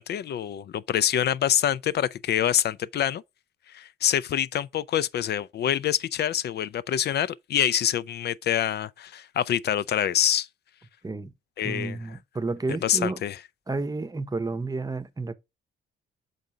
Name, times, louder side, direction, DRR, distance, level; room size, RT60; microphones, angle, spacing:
voice 1, 0.0-3.2 3.7-10.5 11.6-12.0 12.8-13.4, left 10 dB, 55° left, 0.4 m, -26 dB
voice 2, 11.6-13.2 13.7-15.3, right 3 dB, 20° right, 0.8 m, -31 dB
7.0 x 3.9 x 5.0 m
cardioid pair, 90°, 20 cm